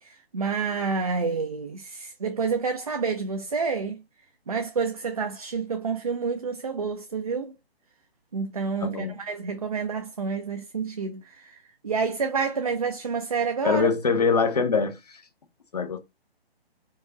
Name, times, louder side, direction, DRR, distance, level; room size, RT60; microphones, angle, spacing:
voice 1, 0.0-4.0 4.5-7.5 8.3-13.9, right 5 dB, 40° right, 0.4 m, -29 dB
voice 2, 8.8-9.2 13.6-15.2 15.7-16.0, left 5 dB, 40° left, 0.6 m, -23 dB
4.6 x 2.2 x 3.8 m
figure-of-eight pair, 140°, 31 cm